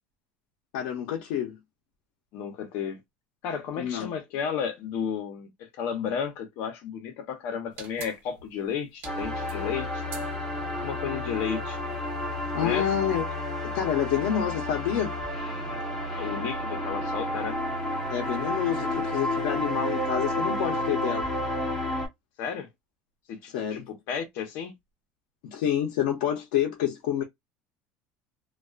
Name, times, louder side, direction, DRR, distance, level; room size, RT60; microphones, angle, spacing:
voice 1, 0.7-1.6 3.8-4.1 12.5-13.3 13.6-15.2 18.1-21.3 23.5-23.9 25.4-27.2, left 10 dB, 85° left, 0.7 m, -28 dB
voice 2, 2.3-3.0 3.4-10.0 10.8-11.8 12.6-12.9 15.7-15.8 16.1-17.6 22.4-22.7 23.3-24.7, left 7 dB, 55° left, 0.8 m, -33 dB
sound 1, 7.7-13.3, right 5 dB, 50° right, 0.9 m, -48 dB
sound 2, 9.0-22.1, left 1 dB, 10° left, 1.0 m, -31 dB
2.3 x 2.2 x 2.4 m
cardioid pair, 155°, 4 cm